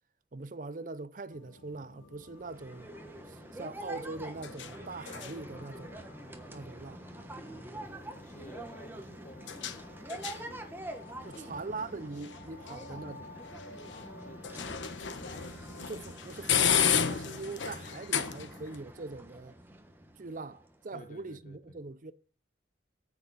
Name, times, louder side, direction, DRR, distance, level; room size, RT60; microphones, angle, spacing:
voice 1, 0.3-2.9 3.3-6.0 6.5-7.0 11.2-13.3 15.8-19.6 20.2-22.1, right 3 dB, 45° right, 0.5 m, -42 dB
sound 1, 1.3-18.8, left 8 dB, 75° left, 1.0 m, -36 dB
sound 2, 2.4-20.9, right 1 dB, 10° right, 1.1 m, -46 dB
voice 2, 8.1-10.6 11.2-11.8 13.8-16.1 20.9-21.8, left 1 dB, 45° left, 1.4 m, -53 dB
9.6 x 8.7 x 4.1 m
head